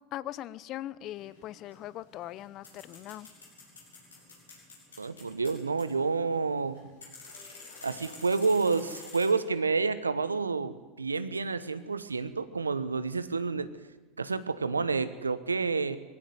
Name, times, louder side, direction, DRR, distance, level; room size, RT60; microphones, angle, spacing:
voice 1, 0.1-3.3, left 13 dB, 45° left, 20 dB, 0.8 m, -40 dB
sound 1, 1.2-9.3, left 3 dB, 85° left, 7.7 m, -50 dB
voice 2, 5.0-6.8 7.8-13.7 14.2-16.0, right 4 dB, 90° right, 14 dB, 1.0 m, -29 dB
21.5 x 16.0 x 9.4 m, 1.3 s
figure-of-eight pair, 80°, 0 cm